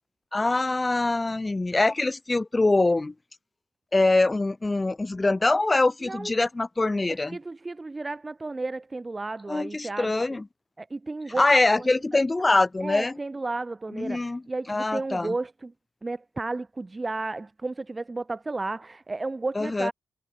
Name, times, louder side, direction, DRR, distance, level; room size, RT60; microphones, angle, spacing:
voice 1, 0.3-3.1 3.9-7.4 9.5-10.4 11.4-13.1 13.9-14.4 14.7-15.3 19.6-19.9, left 2 dB, 25° left, 2.6 m, -23 dB
voice 2, 6.0-6.3 7.3-10.4 10.8-11.5 11.8-12.2 12.8-15.7 16.0-19.9, right 3 dB, 30° right, 5.0 m, -33 dB
hypercardioid pair, 45°, 0 cm